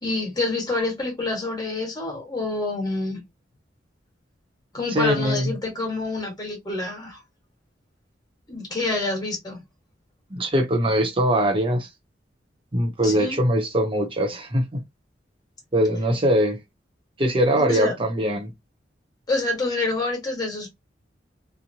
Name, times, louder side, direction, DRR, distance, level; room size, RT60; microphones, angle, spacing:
voice 1, 0.0-3.2 4.7-7.2 8.5-9.6 13.0-13.4 17.6-17.9 19.3-20.7, left 2 dB, 20° left, 1.4 m, -27 dB
voice 2, 4.9-5.5 10.3-11.9 12.7-14.8 15.7-16.6 17.2-18.5, equal, 30° right, 0.8 m, -22 dB
3.0 x 2.1 x 2.7 m
head